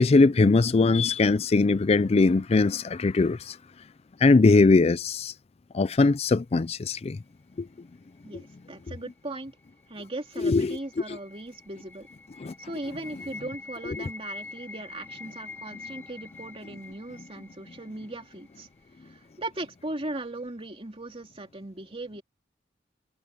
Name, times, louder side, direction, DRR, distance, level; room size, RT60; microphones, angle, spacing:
voice 1, 0.0-3.6 4.2-5.3 5.7-7.2 7.6-7.7 10.4-10.8 12.4-12.5, left 3 dB, 35° left, 0.4 m, -21 dB
voice 2, 8.2-9.5 9.9-12.1 12.6-18.7 19.0-22.2, right 2 dB, 30° right, 2.7 m, -38 dB
sound 1, 9.9-18.9, left 3 dB, 10° left, 3.7 m, -45 dB
head